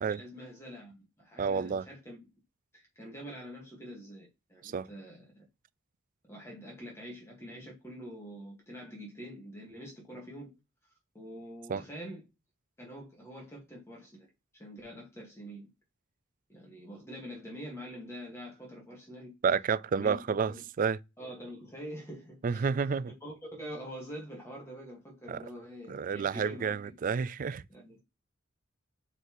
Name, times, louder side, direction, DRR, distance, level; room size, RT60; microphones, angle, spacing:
voice 1, 0.1-2.2 2.7-5.4 6.3-10.5 11.1-12.2 12.8-14.3 14.6-15.7 16.5-19.3 20.0-20.6 21.2-26.9 27.7-28.0, equal, 15° left, 1.7 m, -45 dB
voice 2, 1.4-1.9 4.6-4.9 11.7-11.8 19.4-21.0 22.4-23.1 25.3-25.4 25.9-27.6, right 6 dB, 40° right, 0.3 m, -30 dB
7.9 x 4.0 x 3.0 m
head